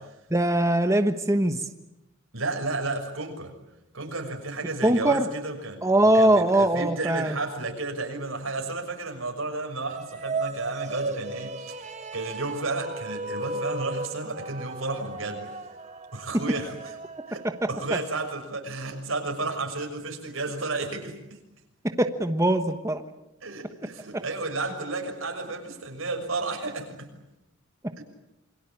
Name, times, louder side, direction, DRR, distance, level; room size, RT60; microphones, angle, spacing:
voice 1, 0.3-1.6 4.8-5.3 5.8-7.4 22.0-23.0 24.1-24.2, right 1 dB, 15° right, 7 dB, 1.3 m, -21 dB
voice 2, 2.3-3.5 3.9-11.8 12.1-15.4 16.1-16.9 17.3-21.4 23.4-27.1 28.0-28.1, right 3 dB, 85° right, 4 dB, 6.4 m, -32 dB
sound 1, 9.8-18.3, right 3 dB, 35° right, 1.4 m, -36 dB
28.0 x 23.5 x 8.7 m, 0.90 s
head